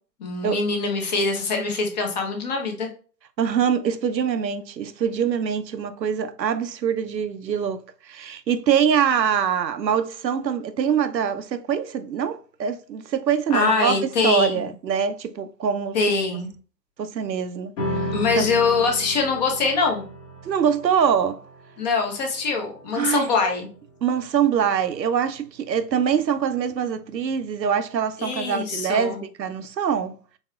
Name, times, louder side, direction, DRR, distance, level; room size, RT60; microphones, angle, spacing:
voice 1, 0.2-2.9 13.5-14.6 15.9-16.5 18.1-20.0 21.8-23.7 28.2-29.2, left 4 dB, 25° left, 0.7 m, -23 dB
voice 2, 3.4-14.0 14.2-16.0 17.0-18.5 20.4-21.4 22.9-23.3 24.0-30.1, right 7 dB, 85° right, 0.6 m, -24 dB
sound 1, 17.8-24.5, equal, 45° left, 1.4 m, -35 dB
4.1 x 3.4 x 2.3 m
figure-of-eight pair, 125°, 50 cm